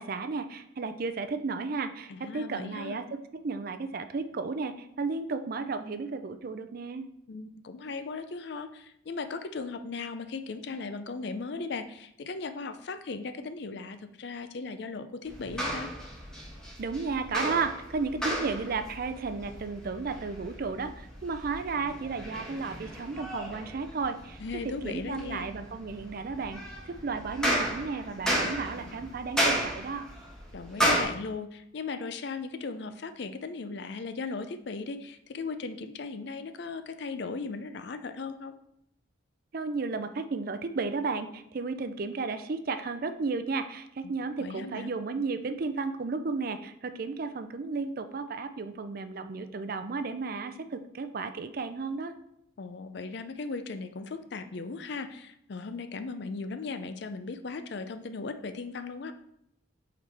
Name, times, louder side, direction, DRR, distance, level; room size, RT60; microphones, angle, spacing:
voice 1, 0.0-3.2 3.4-7.0 16.8-24.4 24.8-30.1 39.5-52.1, right 4 dB, 50° right, 9 dB, 0.4 m, -33 dB
voice 2, 2.1-3.0 7.3-15.9 24.4-25.5 30.5-38.6 44.4-44.9 52.6-59.1, left 4 dB, 60° left, 10 dB, 0.5 m, -37 dB
sound 1, 15.3-31.0, equal, 5° left, 1.3 m, -34 dB
8.0 x 3.9 x 3.4 m, 0.76 s
head